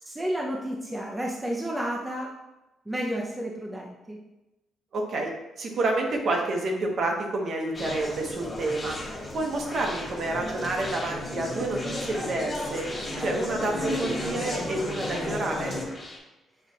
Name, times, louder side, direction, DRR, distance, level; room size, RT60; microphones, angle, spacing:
voice 1, 0.0-2.3 2.9-4.2, equal, 15° right, -2 dB, 0.5 m, -31 dB
voice 2, 4.9-5.3 5.6-9.0 9.3-12.9 13.2-15.8, right 2 dB, 55° right, 1 dB, 0.9 m, -29 dB
Conversation, 7.7-16.2, left 1 dB, 30° left, 1.2 m, -33 dB
6.6 x 2.4 x 2.8 m, 0.98 s
cardioid pair, 90°, 0 cm